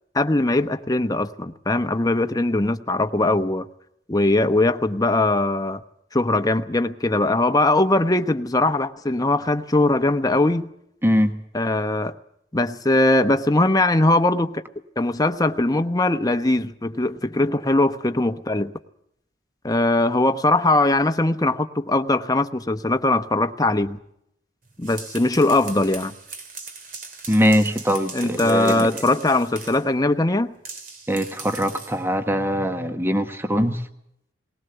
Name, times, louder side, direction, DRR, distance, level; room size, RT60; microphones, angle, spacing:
voice 1, 0.1-3.7 4.1-5.8 6.1-10.7 11.5-12.2 12.5-14.6 15.0-18.7 19.6-24.0 24.8-26.1 28.1-30.5, left 2 dB, 20° left, 8 dB, 1.0 m, -20 dB
voice 2, 11.0-11.4 27.3-28.9 31.1-33.9, equal, 15° right, 7 dB, 1.3 m, -22 dB
sound 1, 24.7-29.9 30.6-32.0, right 4 dB, 50° right, 3.0 m, -39 dB
19.5 x 19.0 x 7.9 m, 0.75 s
head